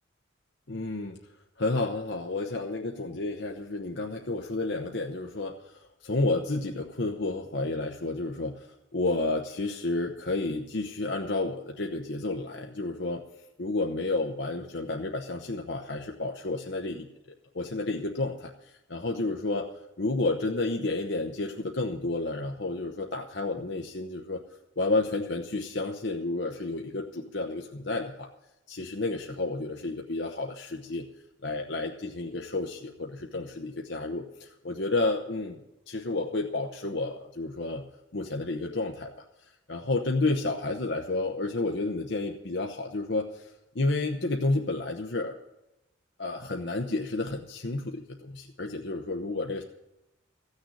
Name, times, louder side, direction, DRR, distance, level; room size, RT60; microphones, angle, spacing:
voice 1, 0.7-1.2 1.6-13.2 13.6-17.1 17.5-19.7 20.0-24.4 24.8-28.3 28.7-31.1 31.4-35.6 35.9-37.8 38.1-39.1 39.4-45.4 46.2-49.6, left 2 dB, 60° left, 2 dB, 0.9 m, -31 dB
15.5 x 6.6 x 9.7 m, 0.92 s
head